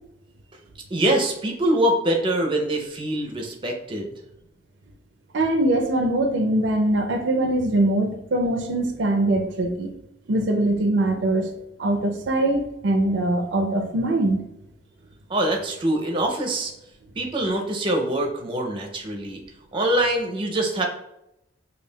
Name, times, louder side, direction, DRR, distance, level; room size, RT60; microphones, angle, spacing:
voice 1, 0.9-4.1 15.3-16.7 17.2-19.4 19.7-20.8, right 1 dB, 30° right, 2 dB, 0.5 m, -24 dB
voice 2, 5.3-9.9 10.3-11.5 11.8-14.4, right 1 dB, 75° right, 5 dB, 0.4 m, -22 dB
5.1 x 2.3 x 2.2 m, 0.84 s
head